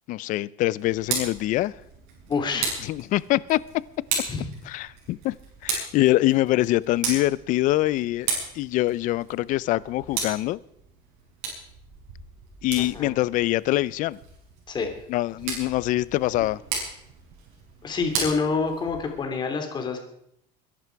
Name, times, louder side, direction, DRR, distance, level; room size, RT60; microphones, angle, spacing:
voice 1, 0.1-1.7 2.8-3.6 4.7-5.3 5.6-8.3 8.5-10.6 12.6-14.2 15.1-16.6, left 17 dB, 50° left, 0.5 m, -24 dB
Tick, 0.8-19.2, right 5 dB, 75° right, 7.3 m, -35 dB
voice 2, 2.3-2.8 4.3-4.5 12.8-13.1 14.7-14.9 17.8-20.0, left 4 dB, 25° left, 2.9 m, -27 dB
22.0 x 11.0 x 4.7 m
cardioid pair, 145°, 17 cm